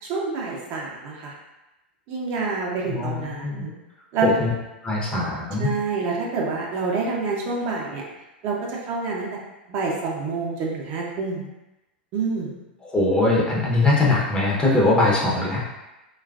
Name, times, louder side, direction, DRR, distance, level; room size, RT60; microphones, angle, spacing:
voice 1, 0.0-1.3 2.1-3.7 4.1-4.3 5.6-8.0 8.4-9.4 9.7-11.5 12.1-12.6, right 4 dB, 45° right, -2 dB, 0.6 m, -27 dB
voice 2, 2.9-3.7 4.2-4.5 4.8-5.7 12.8-15.6, left 2 dB, 15° left, -4 dB, 0.7 m, -21 dB
3.1 x 2.3 x 2.4 m, 1.0 s
figure-of-eight pair, 95°, 5 cm